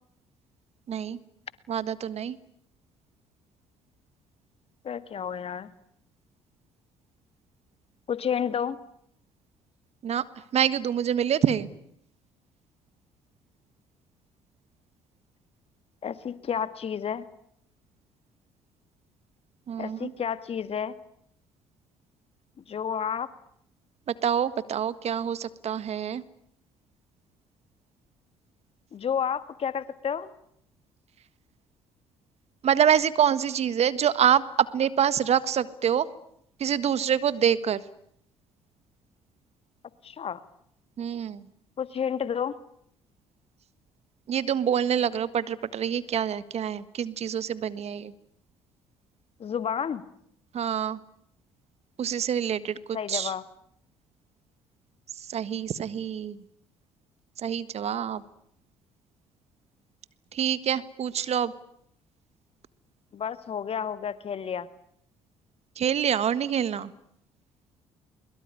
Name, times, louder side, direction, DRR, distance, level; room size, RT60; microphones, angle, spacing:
voice 1, 0.9-1.2 1.7-2.4 10.0-10.2 10.5-11.7 19.7-20.1 24.2-26.2 32.6-36.1 36.6-37.8 41.0-41.5 44.3-48.1 50.5-51.0 52.0-53.3 55.2-56.4 57.4-58.2 60.3-61.5 65.8-66.9, right 9 dB, 50° right, 15 dB, 1.6 m, -26 dB
voice 2, 4.8-5.7 8.1-8.8 16.0-17.2 19.8-21.0 22.7-23.3 28.9-30.3 40.0-40.4 41.8-42.6 49.4-50.0 52.9-53.4 63.1-64.7, left 7 dB, 45° left, 13 dB, 1.8 m, -30 dB
23.0 x 22.5 x 10.0 m, 0.72 s
hypercardioid pair, 55°, 13 cm